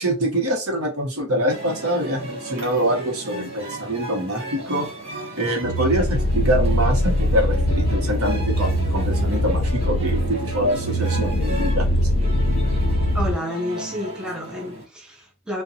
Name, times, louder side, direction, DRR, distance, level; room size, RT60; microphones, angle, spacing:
voice 1, 0.0-4.9 5.4-11.9, right 1 dB, 80° right, 0.9 m, -24 dB
sound 1, 1.5-14.8, right 2 dB, 25° right, 0.8 m, -35 dB
sound 2, 5.6-13.3, left 1 dB, 65° left, 0.5 m, -22 dB
voice 2, 13.1-15.6, left 1 dB, 5° right, 0.4 m, -30 dB
2.6 x 2.2 x 2.6 m
head